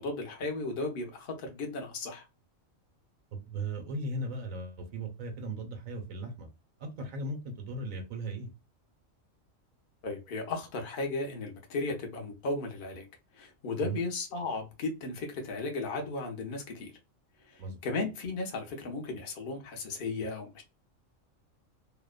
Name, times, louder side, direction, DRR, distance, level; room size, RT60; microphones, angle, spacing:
voice 1, 0.0-2.2 10.0-13.0 13.4-16.9 17.5-20.6, left 3 dB, 50° left, 0.8 m, -35 dB
voice 2, 3.3-6.5 6.8-8.5 13.8-14.0 17.6-17.8, right 2 dB, 85° right, 1.1 m, -37 dB
2.8 x 2.1 x 2.3 m
omnidirectional pair, 1.4 m